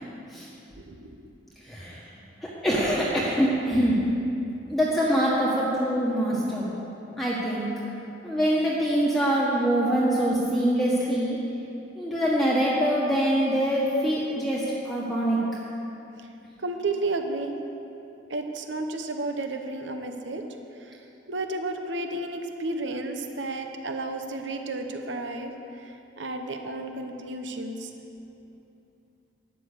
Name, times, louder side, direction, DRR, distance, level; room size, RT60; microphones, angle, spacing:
voice 1, 0.7-1.2 16.2-16.3 16.6-17.6 18.3-20.5 20.7-27.9, right 2 dB, 75° right, 5 dB, 1.0 m, -32 dB
voice 2, 1.6-2.1 2.4-4.0 4.7-6.7 7.2-7.7 8.2-11.4 11.9-15.4, equal, ahead, -7 dB, 1.5 m, -24 dB
13.0 x 10.0 x 6.8 m, 2.9 s
head